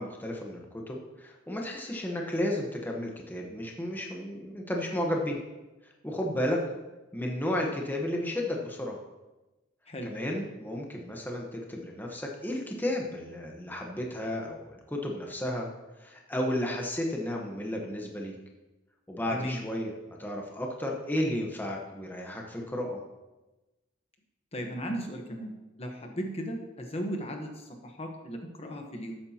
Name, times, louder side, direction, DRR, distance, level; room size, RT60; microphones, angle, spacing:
voice 1, 0.0-5.4 5.8-6.6 7.1-9.0 10.0-15.7 16.0-18.3 19.1-19.9 20.2-23.0, left 1 dB, 10° left, 0 dB, 1.1 m, -33 dB
voice 2, 19.3-19.6 24.5-25.5 25.8-29.1, equal, 30° left, 3 dB, 1.1 m, -36 dB
13.0 x 8.9 x 2.9 m, 1.1 s
head